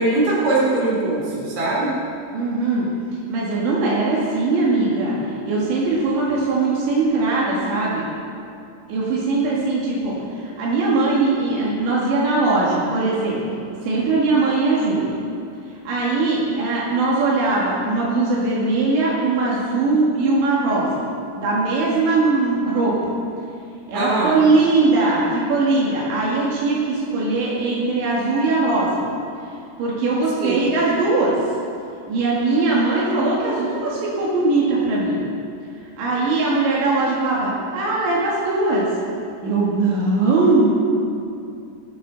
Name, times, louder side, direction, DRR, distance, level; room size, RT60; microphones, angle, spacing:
voice 1, 0.0-1.9 23.9-24.4 30.4-30.6, right 2 dB, 55° right, -5 dB, 5.1 m, -21 dB
voice 2, 2.3-2.9 3.3-5.2 5.5-8.1 8.9-13.4 13.8-15.1 15.9-20.9 21.4-23.1 23.9-29.1 29.8-31.4 32.1-35.2 36.0-38.9 39.4-40.7, right 3 dB, 80° right, -5 dB, 4.3 m, -20 dB
20.0 x 13.0 x 4.1 m, 2.5 s
omnidirectional pair, 5.1 m